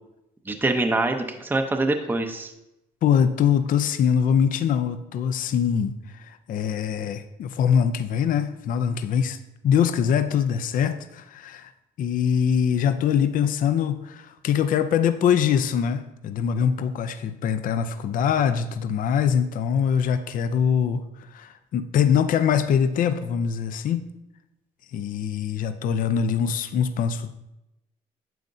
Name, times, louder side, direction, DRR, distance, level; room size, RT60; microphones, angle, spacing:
voice 1, 0.5-2.5, right 2 dB, 10° right, 5 dB, 0.6 m, -24 dB
voice 2, 3.0-5.9 6.2-9.4 9.6-11.7 12.0-21.0 21.3-24.1 24.9-27.4, left 8 dB, 55° left, 10 dB, 0.5 m, -23 dB
9.2 x 7.2 x 2.6 m, 0.91 s
cardioid pair, 110°, 17 cm